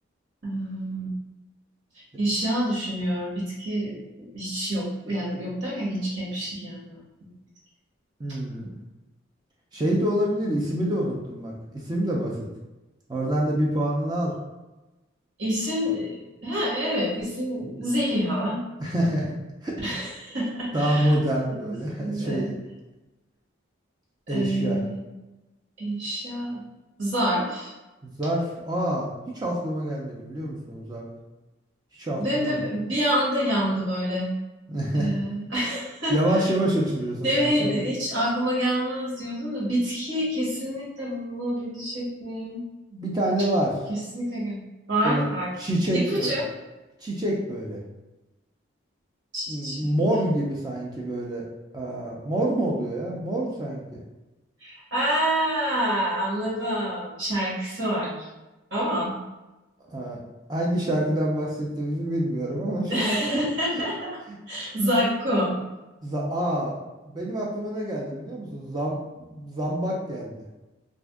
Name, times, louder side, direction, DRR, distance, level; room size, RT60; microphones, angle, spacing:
voice 1, 0.4-1.1 2.2-7.0 15.4-18.6 19.8-21.2 21.5-21.7 22.0-22.5 24.3-25.0 25.8-26.6 27.0-27.7 32.2-34.3 34.9-36.4 37.2-42.6 43.9-44.6 44.9-45.5 45.9-46.4 49.3-49.8 54.6-58.3 58.7-59.2 62.9-63.9 64.5-65.6, equal, 60° right, -7 dB, 1.3 m, -27 dB
voice 2, 8.2-8.8 9.7-12.4 13.1-14.3 18.8-19.4 19.6-19.8 20.7-22.5 24.3-24.8 28.0-31.1 31.9-32.6 34.7-35.2 36.1-37.8 42.9-43.7 45.0-45.2 45.6-46.4 47.0-47.8 49.5-51.5 51.7-54.0 59.8-60.2 60.5-63.2 63.7-63.8 64.3-64.4 66.0-66.8 67.1-70.3, right 1 dB, 20° right, -3 dB, 0.4 m, -27 dB
2.5 x 2.3 x 3.5 m, 1.1 s
head